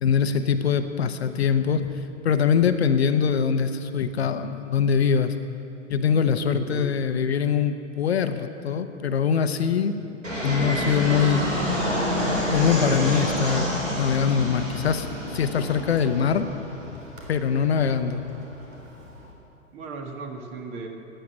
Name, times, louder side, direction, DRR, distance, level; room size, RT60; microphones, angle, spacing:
voice 1, 0.0-1.9 2.2-5.3 5.9-10.0 10.4-11.4 12.5-16.5 17.3-18.2, left 7 dB, 55° left, 9 dB, 0.9 m, -23 dB
voice 2, 6.5-6.9 10.0-10.1 17.6-17.8 19.7-20.9, right 4 dB, 30° right, 3 dB, 1.7 m, -37 dB
Fixed-wing aircraft airplane, 10.2-19.3, equal, 80° right, 4.0 m, -29 dB
14.5 x 10.0 x 8.5 m, 2.8 s
figure-of-eight pair, 110°, 38 cm